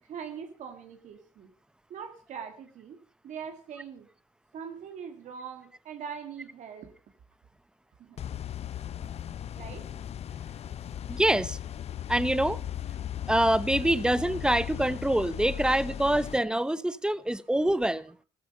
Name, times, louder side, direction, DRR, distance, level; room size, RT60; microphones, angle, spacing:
voice 1, 0.0-1.5 1.9-3.0 3.2-4.1 4.5-6.9 8.0-8.2 9.5-9.9 13.8-13.9, right 7 dB, 70° right, 1.9 m, -42 dB
sound 1, 8.2-16.4, left 10 dB, 55° left, 0.6 m, -37 dB
voice 2, 11.1-11.6 12.1-12.6 13.3-18.1, right 1 dB, 5° right, 0.9 m, -25 dB
15.0 x 13.5 x 5.3 m
cardioid pair, 85°, 13 cm